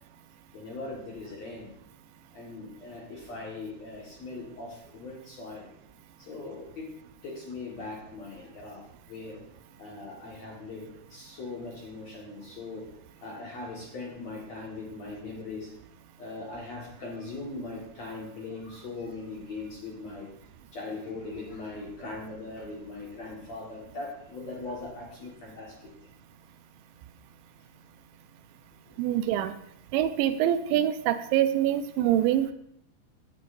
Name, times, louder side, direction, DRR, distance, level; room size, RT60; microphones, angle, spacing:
voice 1, 0.5-1.7 2.3-5.7 6.2-6.9 7.2-9.4 9.8-12.9 13.2-15.7 16.2-20.3 20.7-25.9 28.9-29.0, left 3 dB, 55° left, -3 dB, 2.1 m, -40 dB
voice 2, 29.0-29.5 29.9-32.5, right 11 dB, 85° right, 10 dB, 3.0 m, -25 dB
16.5 x 9.4 x 2.6 m, 0.73 s
omnidirectional pair, 5.1 m